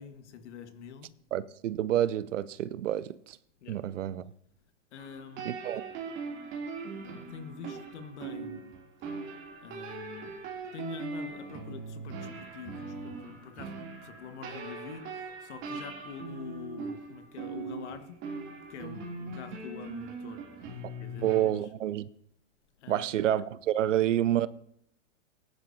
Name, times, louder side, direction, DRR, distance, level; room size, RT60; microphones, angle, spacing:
voice 1, 0.0-1.1 3.6-3.9 4.9-5.6 7.0-8.7 9.6-10.4 10.7-18.3 18.6-21.7 22.8-23.2, left 6 dB, 65° left, 1.7 m, -46 dB
voice 2, 1.3-3.4 3.7-4.2 5.5-5.8 21.2-22.1 22.9-24.5, right 12 dB, 75° right, 0.6 m, -28 dB
sound 1, 5.0-21.4, right 4 dB, 30° right, 2.9 m, -41 dB
20.0 x 10.5 x 2.8 m
hypercardioid pair, 125°, 38 cm